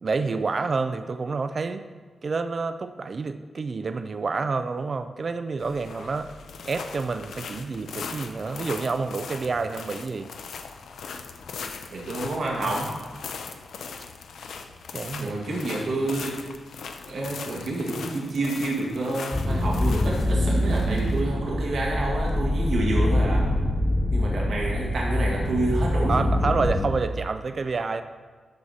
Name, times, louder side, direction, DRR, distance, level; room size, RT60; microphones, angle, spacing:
voice 1, 0.0-1.9 2.2-6.3 6.7-10.3 14.9-15.4 26.1-28.0, right 4 dB, 40° right, 10 dB, 0.3 m, -28 dB
sound 1, 5.6-22.5, left 5 dB, 90° left, 0.6 m, -40 dB
voice 2, 11.9-12.9 15.2-16.3 17.1-23.4 24.1-26.3, right 2 dB, 65° right, -3 dB, 1.7 m, -28 dB
sound 2, 19.3-26.8, left 1 dB, 15° left, 1.2 m, -24 dB
13.0 x 4.9 x 4.1 m, 1.5 s
wide cardioid pair, 140°, 0 cm